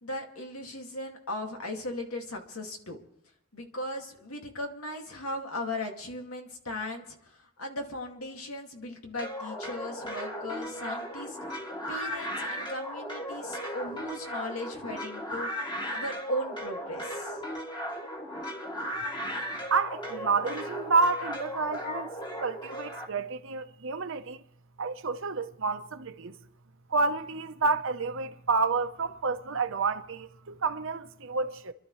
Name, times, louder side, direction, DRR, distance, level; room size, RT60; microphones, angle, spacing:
voice 1, 0.0-3.0 3.5-11.4 11.9-17.4, left 1 dB, 85° left, 2.3 m, -37 dB
sound 1, 9.2-23.1, equal, 20° left, 2.3 m, -36 dB
voice 2, 19.7-22.1 22.4-24.4 24.8-26.4 26.9-31.7, right 4 dB, 65° right, 0.9 m, -29 dB
28.5 x 12.0 x 3.2 m
head